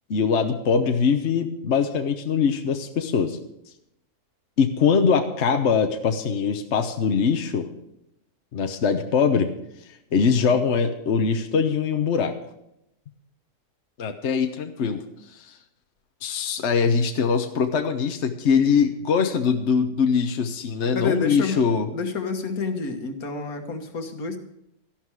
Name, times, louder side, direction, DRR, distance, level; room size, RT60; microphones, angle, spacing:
voice 1, 0.1-3.4 4.6-7.7 8.5-9.5 9.8-12.3 14.0-15.6 16.2-21.9, left 6 dB, 50° left, 6 dB, 1.1 m, -22 dB
voice 2, 20.9-21.6 21.9-24.4, left 4 dB, 70° left, 6 dB, 1.9 m, -29 dB
13.5 x 11.5 x 4.8 m, 0.79 s
omnidirectional pair, 1.6 m